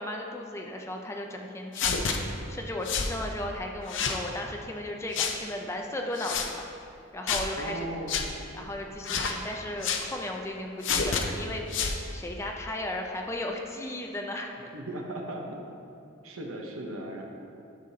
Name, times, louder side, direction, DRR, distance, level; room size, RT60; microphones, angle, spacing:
voice 1, 0.0-6.6 7.1-7.9 8.5-14.6, left 1 dB, 15° left, 1 dB, 0.5 m, -36 dB
sound 1, 1.7-2.2 2.9-3.1 3.9-4.2 5.1-5.4 6.2-6.5 7.3-7.5 8.1-8.3 9.0-9.4 9.8-10.1 10.8-11.2 11.7-12.0, left 6 dB, 60° left, 0.6 m, -28 dB
voice 2, 7.6-8.3 14.7-15.6 16.2-17.2, right 1 dB, 80° right, 1 dB, 1.0 m, -37 dB
11.0 x 6.5 x 2.8 m, 2.6 s
head